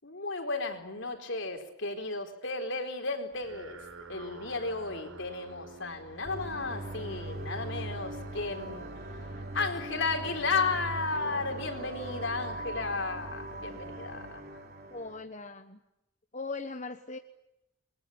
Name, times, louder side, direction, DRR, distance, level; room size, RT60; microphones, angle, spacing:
voice 1, 0.0-14.6, left 3 dB, 60° left, 6 dB, 4.3 m, -34 dB
sound 1, 3.3-14.8, right 2 dB, 80° right, 5.4 m, -51 dB
sound 2, 6.2-15.2, right 2 dB, 45° right, 4.4 m, -40 dB
voice 2, 14.9-15.8 16.3-17.2, left 3 dB, 35° left, 7 dB, 1.2 m, -39 dB
28.0 x 23.0 x 8.7 m, 0.92 s
head